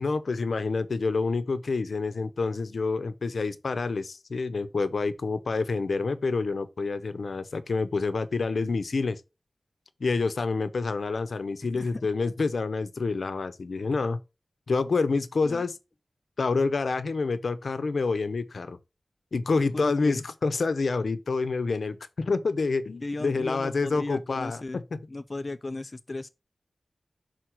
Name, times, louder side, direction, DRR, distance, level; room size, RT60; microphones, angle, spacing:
voice 1, 0.0-9.2 10.0-14.2 14.7-15.8 16.4-18.8 19.3-24.8, left 4 dB, 80° left, 0.7 m, -28 dB
voice 2, 19.6-20.2 23.0-24.8 25.1-26.3, left 2 dB, 40° left, 0.4 m, -36 dB
6.3 x 4.3 x 4.4 m
wide cardioid pair, 85°, 0 cm